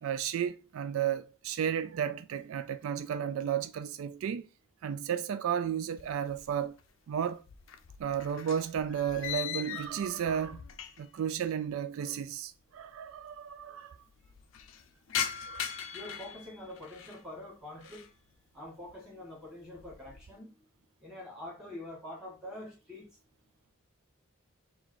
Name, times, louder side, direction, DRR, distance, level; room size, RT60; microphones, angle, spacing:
voice 1, 0.0-4.4 4.8-6.7 7.1-7.4 8.0-10.6 11.0-14.0 15.5-15.6, right 8 dB, 75° right, 0.3 m, -33 dB
sound 1, 6.0-6.9 7.1-11.2 11.5-11.6 12.5-12.6 12.7-12.8 13.1-13.6 14.0-17.2 17.7-18.2 18.6-19.0 19.4-20.3, left 9 dB, 70° left, 0.4 m, -40 dB
voice 2, 15.9-18.1 18.5-20.7 21.0-23.2, left 1 dB, 5° right, 1.9 m, -45 dB
4.0 x 2.4 x 4.5 m
head